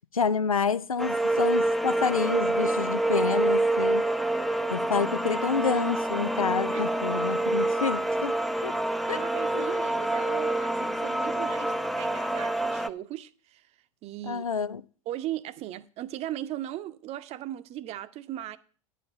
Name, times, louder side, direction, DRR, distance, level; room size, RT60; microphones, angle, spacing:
voice 1, 0.1-4.0 4.7-8.3 8.6-8.7 9.1-9.2 9.5-9.7 14.2-14.8, left 6 dB, 90° left, 0.5 m, -28 dB
sound 1, 1.0-12.9, right 2 dB, ahead, 0.5 m, -27 dB
voice 2, 6.7-7.2 8.5-8.8 9.1-13.7 14.0-14.4 15.1-18.6, right 13 dB, 35° right, 0.7 m, -38 dB
10.5 x 5.1 x 7.2 m
figure-of-eight pair, 85°, 18 cm